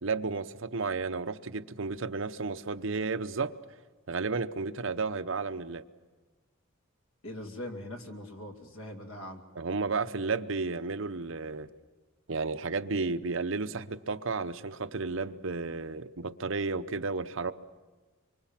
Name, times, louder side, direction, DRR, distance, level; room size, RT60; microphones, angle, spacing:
voice 1, 0.0-3.5 4.1-5.8 9.6-11.7 12.3-17.5, right 4 dB, 65° right, 10 dB, 0.8 m, -32 dB
voice 2, 7.2-9.4, left 1 dB, 80° left, 3 dB, 2.6 m, -41 dB
25.5 x 24.5 x 7.5 m, 1.3 s
head